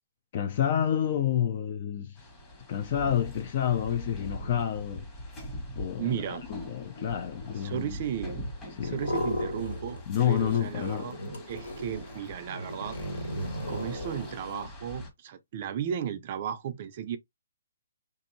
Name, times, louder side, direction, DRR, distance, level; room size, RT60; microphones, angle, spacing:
voice 1, 0.3-2.1 2.7-5.0 5.8-7.9 8.8-9.0 10.1-11.1, left 9 dB, 40° left, 0.4 m, -29 dB
sound 1, 2.2-15.1, equal, 15° left, 1.3 m, -43 dB
voice 2, 6.0-6.5 7.6-8.5 8.8-11.2 11.5-13.4 13.7-17.2, right 9 dB, 40° right, 0.4 m, -35 dB
sound 2, 8.8-10.1 10.3-14.7, left 1 dB, 75° left, 1.7 m, -36 dB
3.6 x 2.6 x 2.6 m
hypercardioid pair, 155°, 0 cm